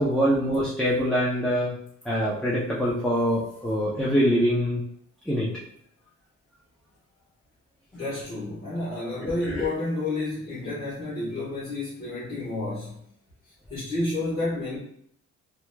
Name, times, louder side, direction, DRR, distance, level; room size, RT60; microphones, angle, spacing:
voice 1, 0.0-1.8 2.0-4.8 5.3-5.5 9.2-9.7, equal, ahead, -6 dB, 0.5 m, -24 dB
voice 2, 7.9-13.0 13.7-14.8, left 2 dB, 30° left, -10 dB, 1.1 m, -30 dB
2.8 x 2.2 x 2.2 m, 0.69 s
cardioid pair, 90°, 30 cm